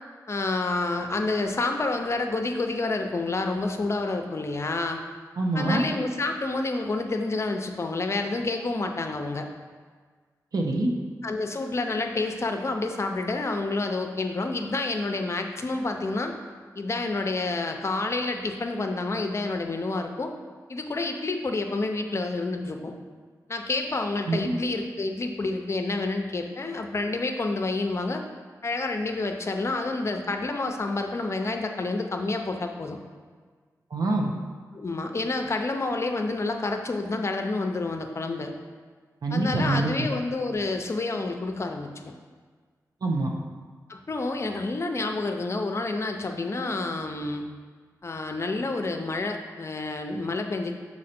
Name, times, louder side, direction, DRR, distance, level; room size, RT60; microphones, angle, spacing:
voice 1, 0.3-5.0 5.5-9.5 11.2-16.4 16.8-20.3 20.7-22.9 23.5-28.2 28.6-33.0 34.7-38.5 39.3-42.1 43.9-47.5 48.0-50.8, left 3 dB, 45° left, 4 dB, 0.6 m, -29 dB
voice 2, 5.4-5.8 10.5-10.9 24.3-24.5 33.9-34.3 39.2-40.1 43.0-43.3, right 2 dB, 70° right, 1 dB, 0.8 m, -25 dB
6.4 x 4.4 x 4.3 m, 1.5 s
wide cardioid pair, 85°, 7 cm